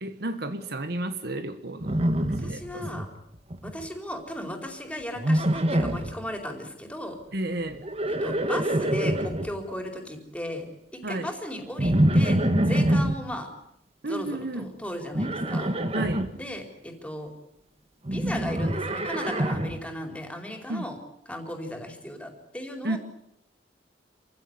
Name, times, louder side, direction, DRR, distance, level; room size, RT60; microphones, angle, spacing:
voice 1, 0.0-2.9 7.3-7.8 11.0-11.3 14.0-14.7 15.9-16.3 20.7-20.9 22.8-23.0, right 1 dB, 65° right, 9 dB, 1.6 m, -32 dB
Livestock farm animals working animals, 1.8-3.1 3.3-3.9 5.2-6.2 7.7-9.5 11.8-13.2 15.1-16.3 18.1-19.8, right 1 dB, 35° right, 1.8 m, -25 dB
voice 2, 2.4-3.1 3.6-7.2 8.1-10.7 10.9-12.4 12.7-13.5 14.0-15.7 16.4-17.3 18.1-21.0 21.3-23.0, left 1 dB, 10° left, 4 dB, 4.6 m, -36 dB
27.5 x 16.0 x 9.8 m, 0.76 s
head